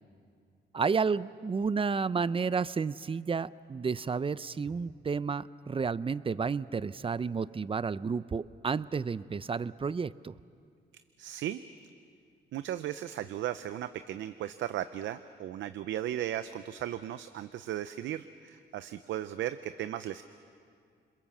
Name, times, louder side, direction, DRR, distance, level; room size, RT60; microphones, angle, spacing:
voice 1, 0.7-10.3, right 5 dB, 30° right, 17 dB, 0.5 m, -31 dB
voice 2, 11.2-11.6 12.5-20.2, right 12 dB, 90° right, 12 dB, 0.6 m, -36 dB
27.5 x 21.5 x 7.2 m, 2.2 s
cardioid pair, 80°, 19 cm